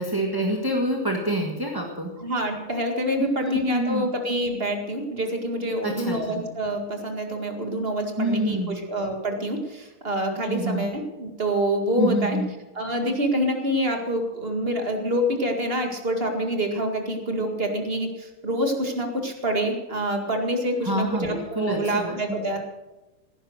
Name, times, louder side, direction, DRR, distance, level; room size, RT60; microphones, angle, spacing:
voice 1, 0.0-2.1 3.2-4.1 5.8-6.4 8.2-8.8 10.5-10.9 12.0-12.5 20.8-22.4, right 1 dB, 10° right, 1 dB, 1.3 m, -27 dB
voice 2, 2.2-12.4 12.7-22.6, equal, 30° right, 4 dB, 2.1 m, -26 dB
17.0 x 10.5 x 6.5 m, 1.0 s
omnidirectional pair, 2.4 m